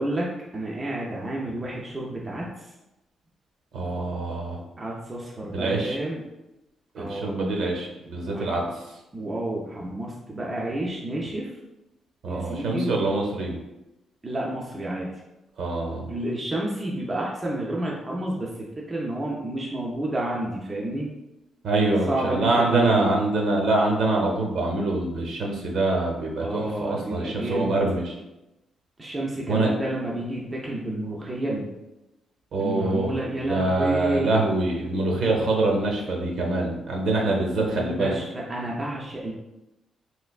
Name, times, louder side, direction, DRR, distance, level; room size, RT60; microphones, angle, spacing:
voice 1, 0.0-2.7 4.8-6.2 7.0-7.5 8.2-8.7 9.1-11.5 12.3-12.9 14.2-15.1 16.1-21.1 21.8-23.1 26.4-27.8 29.0-31.7 32.6-34.4 37.6-39.3, right 1 dB, 15° right, -3 dB, 0.4 m, -30 dB
voice 2, 3.7-4.6 5.5-6.0 6.9-8.6 12.2-13.5 15.6-16.1 21.6-28.1 29.5-29.7 32.5-33.1 33.5-38.2, right 2 dB, 60° right, 0 dB, 0.7 m, -25 dB
3.2 x 3.1 x 2.3 m, 0.96 s
cardioid pair, 180°, 0 cm